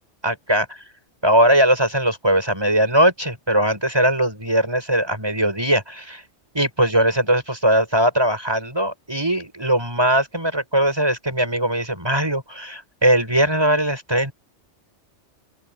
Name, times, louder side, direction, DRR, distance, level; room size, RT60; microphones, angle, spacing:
voice 1, 0.2-0.6 1.2-6.2 6.5-14.3, right 1 dB, 20° right, 6.9 m, -20 dB
open air
omnidirectional pair, 1.2 m